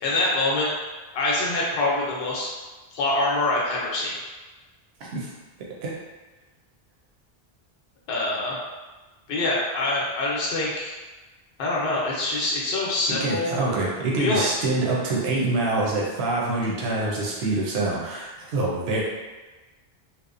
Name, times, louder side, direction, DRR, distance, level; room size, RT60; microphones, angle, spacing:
voice 1, 0.0-0.7 1.1-2.5 2.9-4.1 8.1-8.6 9.3-11.0 11.6-13.6 14.2-14.5, left 2 dB, 75° left, -4 dB, 0.8 m, -25 dB
voice 2, 13.2-19.0, right 2 dB, 80° right, -4 dB, 0.8 m, -25 dB
2.8 x 2.0 x 2.4 m, 1.2 s
omnidirectional pair, 1.0 m